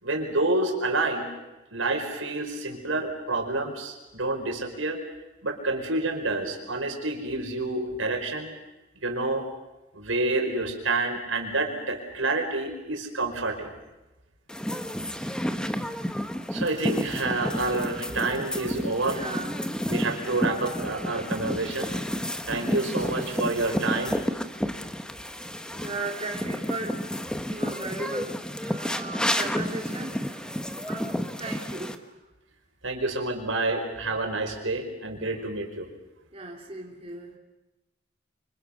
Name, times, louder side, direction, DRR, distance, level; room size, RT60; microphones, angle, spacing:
voice 1, 0.0-1.3 1.7-5.0 5.4-8.5 9.0-9.5 9.9-13.7 16.5-19.2 19.9-22.0 22.5-24.2 32.8-35.9, right 2 dB, 85° right, 3 dB, 5.2 m, -28 dB
sound 1, 14.5-32.0, equal, 5° left, 1.4 m, -31 dB
voice 2, 18.8-19.7 23.0-23.1 25.0-25.2 25.7-27.1 27.5-30.6 30.9-32.2 36.3-37.4, right 2 dB, 30° right, 0 dB, 3.4 m, -37 dB
30.0 x 25.5 x 6.7 m, 1.0 s
head